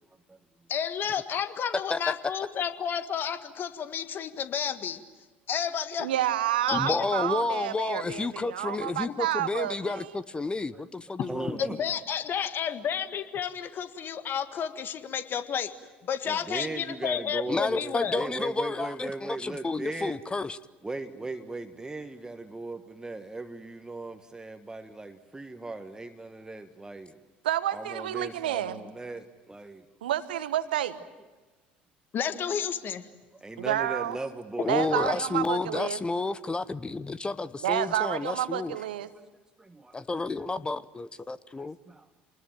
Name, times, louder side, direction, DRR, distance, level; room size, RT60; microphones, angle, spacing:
voice 1, 0.7-5.0 5.5-6.1 6.7-7.1 8.0-8.2 11.6-15.7 16.0-18.2 32.1-33.1 35.0-35.1, left 8 dB, 45° left, 10 dB, 1.7 m, -31 dB
voice 2, 6.0-10.1 27.4-28.8 30.0-31.0 33.6-34.2 34.7-36.0 37.6-39.1, right 12 dB, 80° right, 13 dB, 1.2 m, -29 dB
voice 3, 6.7-11.6 17.5-20.6 34.6-38.8 39.9-41.8, left 3 dB, 20° left, 16 dB, 0.8 m, -31 dB
voice 4, 11.3-11.8 16.2-20.2 20.8-27.2 27.7-29.9 33.3-35.1 39.1-39.2 39.6-40.1 41.6-42.1, right 2 dB, 15° right, 7 dB, 1.5 m, -38 dB
27.5 x 20.5 x 9.2 m, 1.3 s
hypercardioid pair, 65°, 5 cm